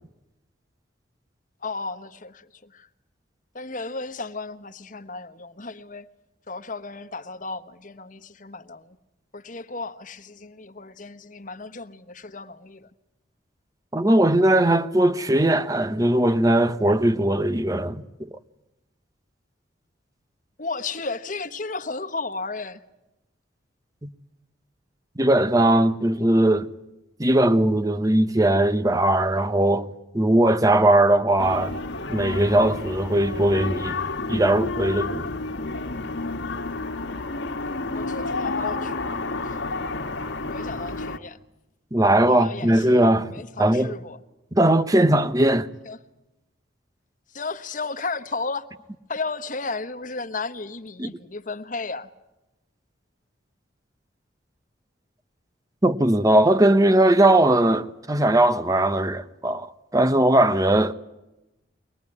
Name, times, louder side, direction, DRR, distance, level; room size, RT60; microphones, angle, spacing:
voice 1, 1.6-2.9 3.5-6.1 6.5-9.0 9.3-12.9 20.6-22.8 37.9-39.1 39.4-39.6 40.4-41.4 42.3-44.2 44.9-45.0 45.8-46.0 47.3-48.7 49.1-52.1, left 3 dB, 45° left, 1.2 m, -34 dB
voice 2, 13.9-18.3 24.0-24.1 25.2-26.7 27.2-31.7 32.1-34.0 34.3-35.3 41.9-43.3 43.6-43.9 44.5-45.7 51.0-51.1 55.8-60.9, right 1 dB, 20° right, 0.9 m, -19 dB
sound 1, 31.4-41.2, left 3 dB, 70° left, 1.5 m, -30 dB
23.5 x 19.5 x 9.7 m
head